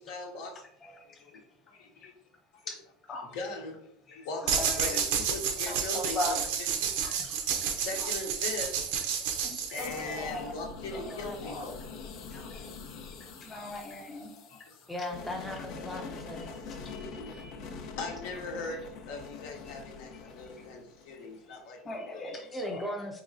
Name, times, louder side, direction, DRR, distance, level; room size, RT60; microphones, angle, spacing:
voice 1, 0.0-0.6 1.2-2.1 3.3-3.8 4.1-7.1 7.8-8.8 9.3-9.4 9.7-11.8 12.1-12.6 12.9-13.4 14.5-14.8 15.1-15.2 16.9-21.8 22.0-22.4, left 3 dB, 75° left, 2 dB, 0.9 m, -40 dB
voice 2, 0.8-1.2 2.7-2.8 3.1-3.3 4.1-5.0 5.7-6.4 7.0-7.7 9.4-10.5 10.9-11.6 12.3-12.7 13.4-14.5 16.7-17.6 21.5-21.6 21.8-22.9, left 1 dB, 25° left, 1 dB, 1.0 m, -39 dB
sound 1, 4.5-10.2, right 7 dB, 75° right, 0.6 m, -30 dB
sound 2, 9.8-21.6, left 4 dB, 50° left, 0.6 m, -44 dB
voice 3, 14.9-16.5 22.5-23.2, left 1 dB, ahead, -1 dB, 0.4 m, -37 dB
4.7 x 3.0 x 2.6 m, 0.72 s
cardioid pair, 150°, 0 cm